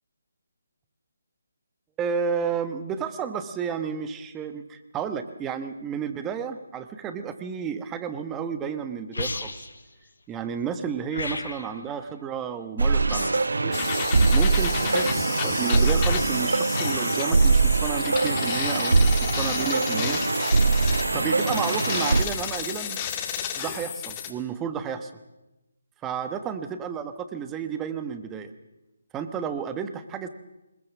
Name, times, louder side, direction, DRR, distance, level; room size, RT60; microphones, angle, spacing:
voice 1, 2.0-9.7 10.3-13.3 13.6-13.8 14.3-20.2 21.1-23.0 23.6-25.1 26.0-28.5 29.1-30.3, right 7 dB, 10° right, 10 dB, 1.2 m, -32 dB
sound 1, 9.1-9.8 11.1-11.8 13.1-13.6, left 3 dB, 75° left, 3.5 m, -33 dB
sound 2, 12.8-22.2, right 3 dB, 80° right, 0.9 m, -22 dB
sound 3, 13.7-24.3, left 9 dB, 25° left, 1.9 m, -32 dB
21.5 x 20.5 x 7.2 m, 0.99 s
figure-of-eight pair, 155°, 0 cm